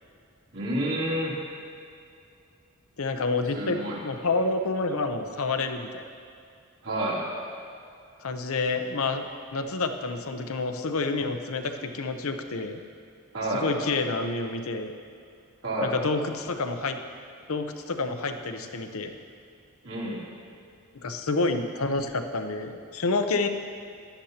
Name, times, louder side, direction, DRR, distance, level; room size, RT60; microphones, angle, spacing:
voice 1, 0.5-1.4 3.5-4.0 6.8-7.2 13.3-13.7 15.6-15.9 19.8-20.2, right 1 dB, 75° right, -7 dB, 3.1 m, -29 dB
voice 2, 3.0-6.0 8.2-12.8 13.5-14.9 15.8-17.0 17.5-19.1 20.9-23.5, left 3 dB, 70° left, 7 dB, 0.7 m, -28 dB
16.0 x 11.5 x 2.9 m, 2.4 s
head